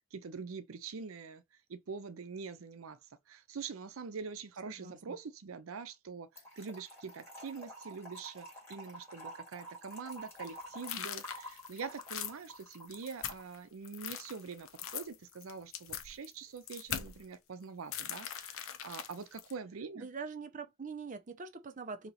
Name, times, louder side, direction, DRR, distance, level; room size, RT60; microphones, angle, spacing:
voice 1, 0.1-1.4 1.7-3.0 3.3-20.1, right 5 dB, 85° right, 0.6 m, -44 dB
voice 2, 4.7-5.0 20.0-22.1, right 5 dB, 40° right, 0.6 m, -43 dB
Trickle dribble / Fill (with liquid), 6.4-13.4, right 1 dB, 10° left, 1.7 m, -49 dB
sound 1, 10.1-13.6 13.8-17.2 17.9-19.5, left 9 dB, 75° left, 0.6 m, -41 dB
2.9 x 2.8 x 4.0 m
head